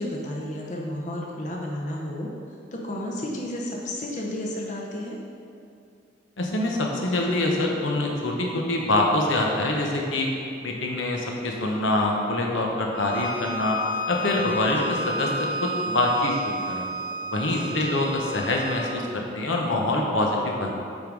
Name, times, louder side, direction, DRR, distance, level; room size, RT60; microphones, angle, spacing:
voice 1, 0.0-2.3 2.7-5.2 17.5-18.1, left 1 dB, 40° left, -2 dB, 0.7 m, -32 dB
voice 2, 6.4-10.3 10.6-13.8 14.1-16.8 17.2-20.7, left 2 dB, 85° left, 0 dB, 1.0 m, -25 dB
Bowed string instrument, 12.9-19.0, equal, 25° right, 0.5 m, -32 dB
8.9 x 3.7 x 4.6 m, 2.5 s
head